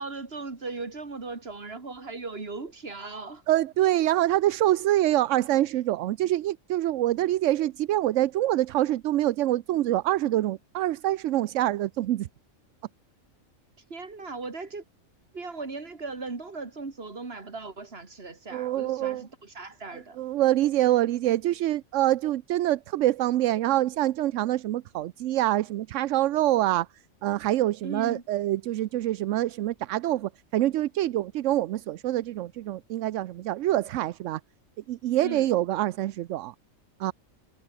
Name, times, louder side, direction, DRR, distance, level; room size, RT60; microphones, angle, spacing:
voice 1, 0.0-3.4 13.9-14.8 15.3-20.2 27.8-28.2 35.2-35.5, right 3 dB, 45° right, 2.7 m, -38 dB
voice 2, 3.5-12.3 18.5-19.3 20.2-26.9 27.2-34.4 34.9-36.5 37.0-37.1, right 14 dB, 70° right, 0.9 m, -25 dB
omnidirectional pair, 1.4 m